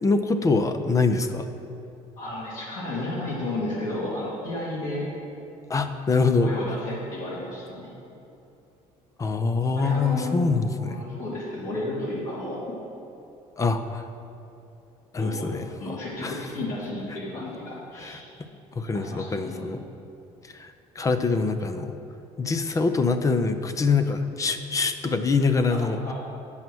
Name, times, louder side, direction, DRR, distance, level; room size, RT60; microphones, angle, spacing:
voice 1, 0.0-1.5 5.7-6.5 9.2-11.0 13.6-14.0 15.1-16.4 18.0-18.2 18.8-19.8 20.5-20.7 21.0-22.0 22.4-26.1, left 4 dB, 25° left, 9 dB, 0.5 m, -24 dB
voice 2, 2.2-5.1 6.4-7.9 9.8-12.6 15.1-18.2 18.9-19.7 25.7-26.1, left 1 dB, 70° left, -8 dB, 2.3 m, -33 dB
9.1 x 5.6 x 6.1 m, 2.7 s
cardioid pair, 120°, 13 cm